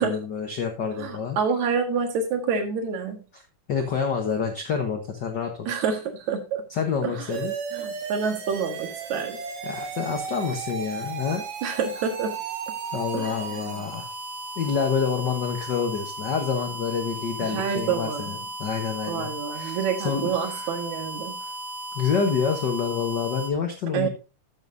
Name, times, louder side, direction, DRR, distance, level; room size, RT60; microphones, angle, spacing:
voice 1, 0.0-1.4 3.3-3.4 3.7-5.7 6.7-7.5 9.6-11.4 12.9-14.1 14.6-20.7 21.9-24.1, left 6 dB, 75° left, 4 dB, 0.9 m, -28 dB
voice 2, 1.0-3.2 5.7-6.6 7.0-7.1 7.7-9.4 11.6-12.3 13.1-13.8 17.4-18.5 19.1-21.4 23.9-24.1, right 6 dB, 65° right, 6 dB, 2.7 m, -28 dB
sound 1, 7.3-23.5, right 3 dB, 85° right, 3.3 m, -35 dB
13.5 x 7.2 x 2.6 m, 0.31 s
omnidirectional pair, 3.7 m